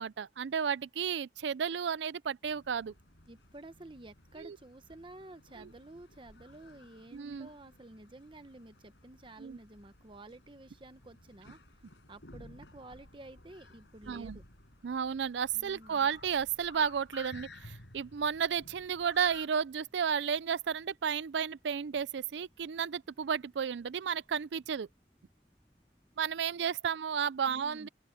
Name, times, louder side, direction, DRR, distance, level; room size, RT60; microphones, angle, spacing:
voice 1, 0.0-2.9 4.4-4.6 5.6-5.7 7.1-7.5 9.4-9.6 14.1-14.4 14.8-24.9 26.2-27.9, right 7 dB, 75° right, 0.4 m, -33 dB
sound 1, 2.4-19.5, left 2 dB, 70° left, 5.4 m, -55 dB
voice 2, 3.3-11.8 12.1-14.4 15.5-16.1 27.4-27.9, right 2 dB, 25° right, 0.9 m, -52 dB
sound 2, 19.0-26.7, equal, 10° left, 7.5 m, -71 dB
open air
head